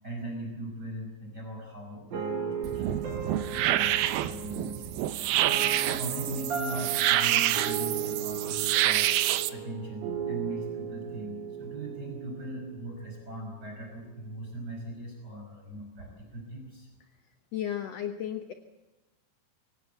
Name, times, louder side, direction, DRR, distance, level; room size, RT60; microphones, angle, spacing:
voice 1, 0.0-5.4 5.9-16.9, right 1 dB, 25° right, 0 dB, 5.9 m, -40 dB
sound 1, 2.1-13.2, right 7 dB, 55° right, 4.7 m, -36 dB
sound 2, 2.6-9.5, right 13 dB, 90° right, 2.8 m, -27 dB
voice 2, 17.5-18.5, left 10 dB, 65° left, 8 dB, 1.7 m, -33 dB
24.5 x 17.5 x 8.1 m, 1.1 s
omnidirectional pair, 4.3 m